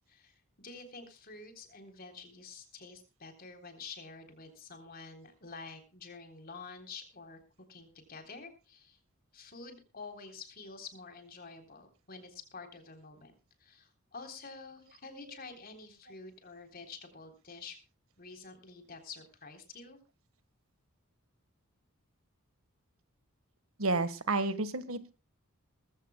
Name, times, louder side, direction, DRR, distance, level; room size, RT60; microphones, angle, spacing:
voice 1, 0.1-7.4 7.7-9.0 9.3-13.3 13.6-17.8 18.2-20.0, left 4 dB, 45° left, 6 dB, 3.7 m, -48 dB
voice 2, 23.8-25.1, right 3 dB, 70° right, 13 dB, 1.5 m, -31 dB
20.5 x 15.5 x 2.3 m, 0.30 s
head